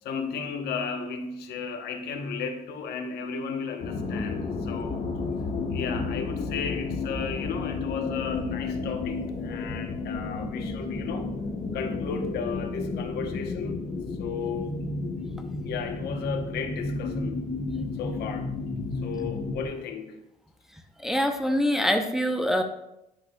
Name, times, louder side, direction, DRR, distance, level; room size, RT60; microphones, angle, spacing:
voice 1, 0.0-5.0 5.7-11.3 11.7-13.9 14.2-14.7 15.6-17.4 18.0-18.5 19.0-20.2, left 6 dB, 75° left, 6 dB, 1.0 m, -34 dB
sound 1, 3.8-19.7, left 3 dB, 50° left, 1.4 m, -32 dB
voice 2, 21.0-22.6, equal, ahead, 4 dB, 0.6 m, -24 dB
10.0 x 6.1 x 2.3 m, 0.85 s
cardioid pair, 110°, 17 cm